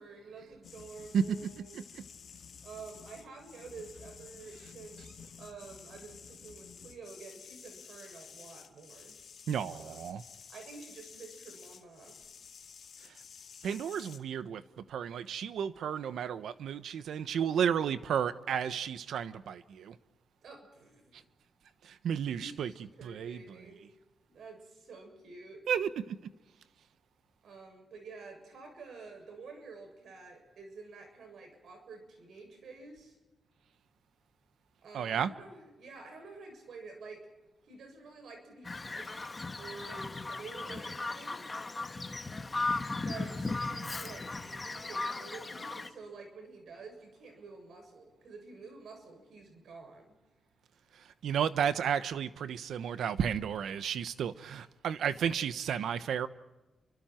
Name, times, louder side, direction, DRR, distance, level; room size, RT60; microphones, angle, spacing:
voice 1, 0.0-1.9 2.6-9.2 9.8-10.1 10.5-12.2 13.0-13.1 20.4-21.2 22.3-23.9 24.3-25.7 27.4-33.1 34.8-37.3 37.7-41.4 43.0-50.2, right 4 dB, 65° right, 7.2 m, -49 dB
sound 1, 0.6-14.2, left 6 dB, 55° left, 1.9 m, -52 dB
voice 2, 9.5-10.2 13.6-14.6 14.9-20.0 21.8-22.7 23.0-23.4 25.7-26.2 34.9-35.3 51.2-56.3, right 8 dB, 90° right, 1.1 m, -32 dB
Bird vocalization bird call bird song, 38.6-45.9, left 3 dB, 20° left, 1.4 m, -37 dB
29.5 x 25.0 x 4.5 m
wide cardioid pair, 170°, 0 cm